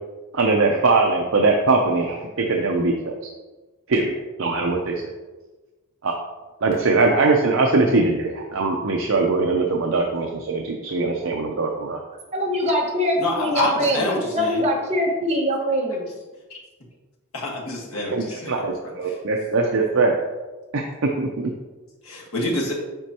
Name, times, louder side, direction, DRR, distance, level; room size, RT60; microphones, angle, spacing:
voice 1, 0.3-3.2 3.9-4.9 6.0-6.1 6.6-12.0 18.0-20.2 20.7-20.8 21.2-21.5, right 3 dB, 60° right, 1 dB, 0.6 m, -21 dB
voice 2, 12.3-16.0, equal, 30° right, -3 dB, 1.3 m, -23 dB
voice 3, 13.2-14.6 16.5-16.6 17.4-18.6 22.1-22.7, left 2 dB, 75° left, -3 dB, 1.6 m, -26 dB
7.8 x 5.2 x 2.9 m, 1.2 s
head